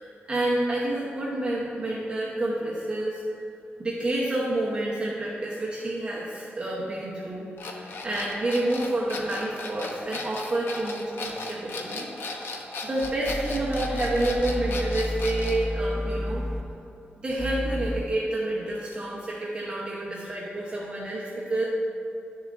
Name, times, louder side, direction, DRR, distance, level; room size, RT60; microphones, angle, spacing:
voice 1, 0.0-3.2 3.8-12.1 12.4-12.5 12.8-16.4 17.2-21.6, right 1 dB, 30° right, -6 dB, 0.9 m, -29 dB
sound 1, 7.6-15.6, left 3 dB, 65° left, 0.8 m, -36 dB
sound 2, 13.0-16.6 17.4-18.0, equal, 5° right, 0.6 m, -31 dB
11.0 x 6.9 x 2.6 m, 2.6 s
wide cardioid pair, 155°, 4 cm